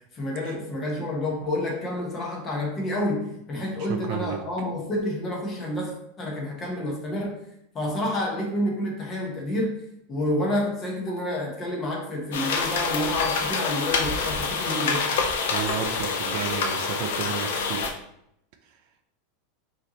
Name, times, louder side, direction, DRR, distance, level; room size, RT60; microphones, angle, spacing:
voice 1, 0.1-7.4 7.7-9.8 10.1-15.1, left 1 dB, 20° left, -2 dB, 0.9 m, -29 dB
voice 2, 3.8-4.4 15.5-18.0, right 8 dB, 45° right, 5 dB, 0.4 m, -32 dB
sound 1, 12.3-17.9, left 5 dB, 75° left, 0.6 m, -27 dB
5.0 x 2.8 x 2.9 m, 0.77 s
supercardioid pair, 170°, 0 cm